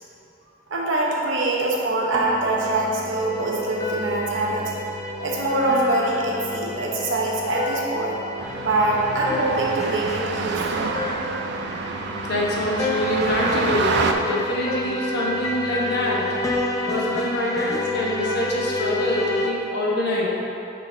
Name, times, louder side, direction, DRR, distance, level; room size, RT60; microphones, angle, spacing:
voice 1, 0.7-4.7 5.2-8.2 8.6-10.9, right 2 dB, 80° right, -2 dB, 1.0 m, -24 dB
sound 1, 2.1-19.5, left 2 dB, 20° left, 0.4 m, -30 dB
sound 2, 8.4-14.1, right 4 dB, 60° right, 0.4 m, -28 dB
voice 2, 12.2-16.2 16.8-20.2, left 1 dB, 60° left, -5 dB, 1.2 m, -25 dB
6.8 x 5.7 x 2.7 m, 2.8 s
head